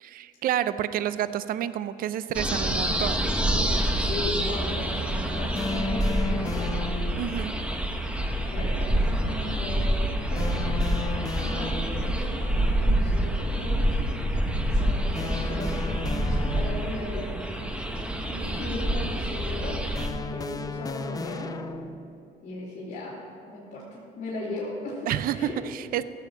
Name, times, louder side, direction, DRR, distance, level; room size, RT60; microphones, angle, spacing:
voice 1, 0.0-3.3 7.2-7.6 18.3-18.9 25.1-26.0, right 11 dB, 60° right, 14 dB, 0.5 m, -30 dB
sound 1, 2.3-20.1, right 1 dB, 5° right, 1.0 m, -27 dB
voice 2, 4.0-6.7 8.2-10.5 11.3-17.4 18.6-21.5 22.4-23.2 23.5-25.5, left 1 dB, 50° left, -10 dB, 3.3 m, -37 dB
sound 2, 5.6-7.4 10.4-12.2 15.1-17.1 20.0-22.2, left 4 dB, 20° left, 0.5 m, -35 dB
16.0 x 7.2 x 5.5 m, 2.5 s
cardioid pair, 110°, 17 cm